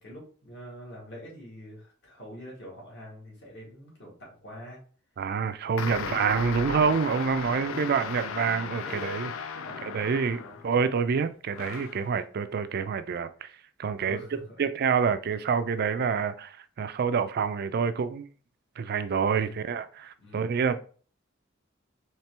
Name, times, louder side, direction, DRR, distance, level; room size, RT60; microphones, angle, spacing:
voice 1, 0.0-4.8 5.6-6.2 7.6-8.0 8.8-10.0 10.3-10.6 14.0-14.4 19.3-19.6 20.2-20.5, equal, 60° left, -3 dB, 2.0 m, -44 dB
voice 2, 5.2-9.3 9.8-14.2 14.6-18.3 18.8-20.8, right 6 dB, 50° right, 11 dB, 0.4 m, -27 dB
sound 1, 5.8-10.8 11.5-12.1, left 6 dB, 80° left, 0.4 m, -36 dB
4.3 x 3.3 x 3.3 m, 0.42 s
head